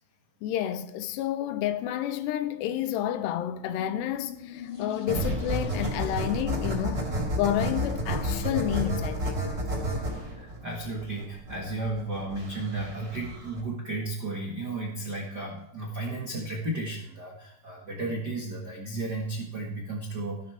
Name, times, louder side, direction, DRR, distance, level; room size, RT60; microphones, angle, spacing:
voice 1, 0.4-9.6, left 11 dB, 85° left, 2.7 m, -30 dB
sound 1, 3.5-6.4, left 8 dB, 50° left, 3.3 m, -43 dB
sound 2, 5.1-13.6, right 1 dB, 25° right, 3.3 m, -31 dB
voice 2, 10.0-20.4, right 2 dB, 60° right, 1.0 m, -34 dB
14.0 x 12.0 x 3.5 m
omnidirectional pair, 4.9 m